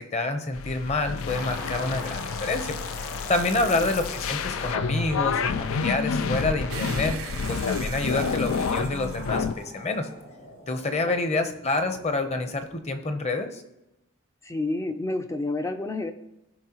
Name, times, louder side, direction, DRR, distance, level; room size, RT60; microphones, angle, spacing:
voice 1, 0.0-7.2 7.5-10.1 10.7-13.6, left 2 dB, 30° left, 7 dB, 0.8 m, -28 dB
sound 1, 0.5-9.5, left 5 dB, 80° left, 0.4 m, -29 dB
sound 2, 1.3-12.9, left 2 dB, 60° left, 1.0 m, -41 dB
sound 3, 6.7-10.2, right 6 dB, 90° right, 0.8 m, -40 dB
voice 2, 14.4-16.1, left 2 dB, 15° left, 7 dB, 0.4 m, -30 dB
16.0 x 5.5 x 3.0 m, 0.92 s
head